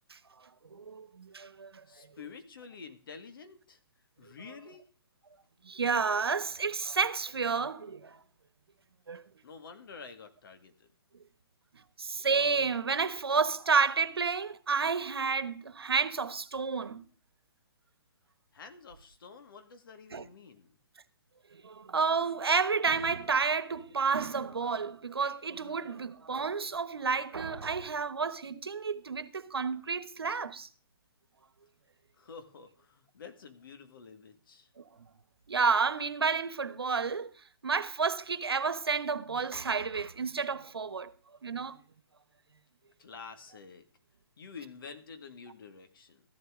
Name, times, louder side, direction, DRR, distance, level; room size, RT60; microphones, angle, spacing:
voice 1, 0.7-1.7 5.7-8.2 9.1-9.2 12.0-17.0 20.1-20.2 21.5-30.7 35.5-37.3 37.6-41.1 41.4-41.8, right 5 dB, 90° right, 1.1 m, -30 dB
voice 2, 1.9-3.8 4.2-4.8 9.4-10.9 18.5-20.7 32.2-34.7 43.0-43.8 44.4-46.2, left 5 dB, 60° left, 1.9 m, -49 dB
13.5 x 11.5 x 3.7 m
hypercardioid pair, 140°, 13 cm